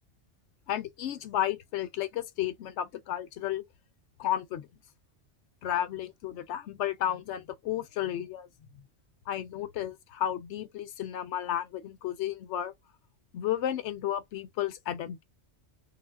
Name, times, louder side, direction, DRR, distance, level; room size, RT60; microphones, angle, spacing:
voice 1, 0.7-3.6 4.2-4.7 5.6-8.5 9.3-12.7 13.3-15.2, left 11 dB, 75° left, 0.9 m, -32 dB
3.4 x 2.0 x 2.3 m
omnidirectional pair, 1.2 m